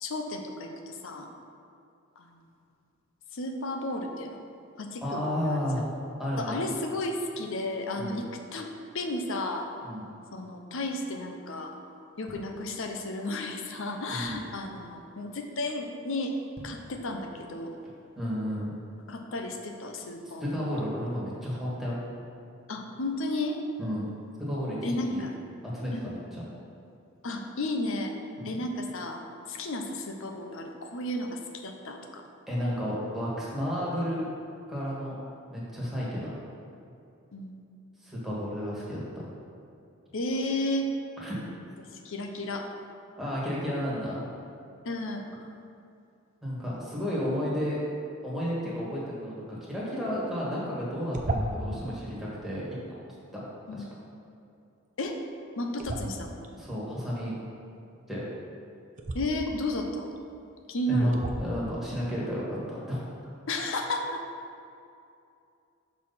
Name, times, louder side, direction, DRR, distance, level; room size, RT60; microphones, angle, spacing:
voice 1, 0.0-1.3 2.2-2.3 3.3-4.4 4.8-5.6 6.4-8.7 8.9-9.7 10.3-11.7 12.2-16.3 16.6-17.8 19.1-20.6 22.7-23.6 24.8-25.3 25.9-26.1 27.2-28.1 28.4-29.2 29.5-32.2 37.3-37.5 40.1-40.9 42.0-42.7 44.8-45.3 51.6-51.8 53.7-53.8 55.0-55.2 55.6-56.4 59.1-60.1 60.7-61.1 63.5-64.2, left 1 dB, 65° left, 4 dB, 0.7 m, -33 dB
voice 2, 5.0-5.8 6.2-6.6 7.9-8.2 9.8-10.0 14.1-14.4 18.2-18.7 20.4-22.0 23.8-24.1 24.4-25.2 25.7-26.4 28.4-28.5 32.5-34.3 34.7-35.1 35.5-36.3 38.0-39.3 41.2-41.4 43.2-44.2 46.4-47.8 48.2-52.7 53.3-53.4 53.8-53.9 56.5-57.3 58.1-58.2 60.9-63.0, equal, ahead, -8 dB, 1.7 m, -32 dB
sound 1, 12.2-13.2 13.7-13.8 14.0-14.7 15.2-15.5 15.7-15.8 16.4-17.0 17.4-17.5, equal, 80° right, 1.4 m, -49 dB
sound 2, 51.1-51.8 55.8-56.5 59.0-59.2 60.2-60.3 61.1-61.6, right 1 dB, 35° right, 0.5 m, -32 dB
6.6 x 4.1 x 5.6 m, 2.6 s
head